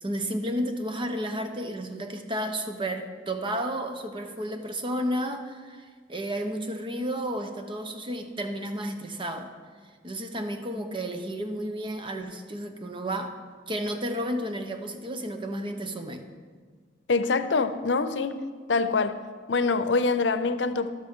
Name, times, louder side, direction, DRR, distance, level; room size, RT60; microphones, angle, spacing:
voice 1, 0.0-9.5 10.0-13.4 13.7-16.3, equal, 30° right, 6 dB, 0.9 m, -32 dB
voice 2, 17.1-18.4 18.7-19.2 19.5-20.9, left 4 dB, 90° left, 11 dB, 0.6 m, -25 dB
13.0 x 12.0 x 3.8 m, 1.6 s
head